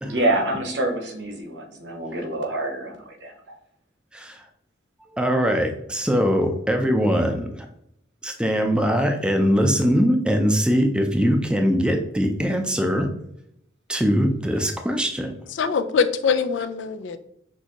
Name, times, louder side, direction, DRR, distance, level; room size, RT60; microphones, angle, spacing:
voice 1, 0.0-3.3, right 1 dB, 65° right, 2 dB, 1.1 m, -26 dB
voice 2, 4.1-4.4 5.1-7.7 8.2-13.1 13.9-15.3, equal, 5° right, 4 dB, 0.5 m, -21 dB
voice 3, 15.5-17.2, left 5 dB, 75° left, 11 dB, 0.4 m, -23 dB
6.3 x 2.7 x 2.9 m, 0.74 s
head